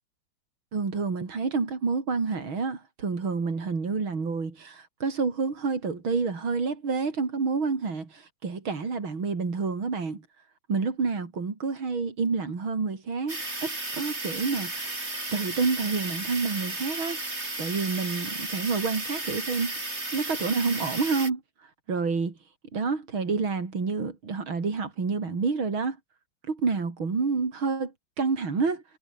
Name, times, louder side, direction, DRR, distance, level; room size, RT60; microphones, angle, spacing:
voice 1, 0.7-10.2 10.7-15.0 15.3-17.2 17.6-19.8 20.1-21.4 21.9-22.3 22.7-26.0 26.5-28.8, right 4 dB, 75° right, 4.5 m, -28 dB
sound 1, 13.3-21.3, right 2 dB, 30° right, 5.3 m, -34 dB
omnidirectional pair, 2.2 m